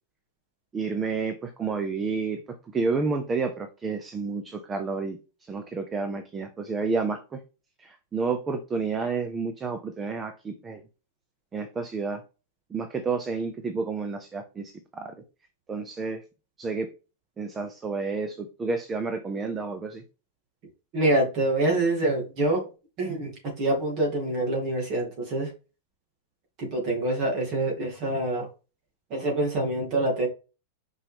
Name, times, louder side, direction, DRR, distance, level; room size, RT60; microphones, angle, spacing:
voice 1, 0.7-2.4 2.7-7.4 7.8-10.8 11.5-12.2 12.7-15.1 15.7-16.2 16.6-16.9 17.4-20.0, right 4 dB, 10° right, 7 dB, 0.5 m, -30 dB
voice 2, 20.9-22.7 23.0-25.5 26.6-28.5 29.1-30.3, right 2 dB, 30° right, 0 dB, 2.4 m, -26 dB
5.7 x 5.4 x 3.4 m, 0.32 s
supercardioid pair, 175°, 0 cm